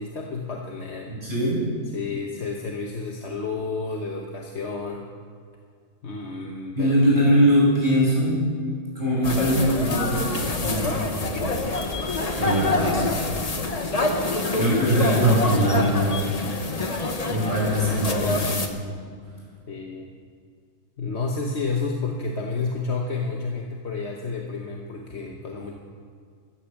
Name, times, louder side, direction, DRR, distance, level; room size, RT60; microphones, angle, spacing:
voice 1, 0.0-1.1 1.9-5.1 6.0-6.9 12.3-12.6 19.7-20.1 21.0-25.7, left 4 dB, 45° left, 1 dB, 1.4 m, -30 dB
voice 2, 1.1-1.7 6.8-8.5 8.9-11.5 11.9-13.2 14.3-16.3 17.3-18.7, equal, 30° right, -6 dB, 6.0 m, -22 dB
sound 1, 9.2-18.7, left 2 dB, 25° left, 1.1 m, -26 dB
15.5 x 12.5 x 7.2 m, 2.2 s
omnidirectional pair, 1.6 m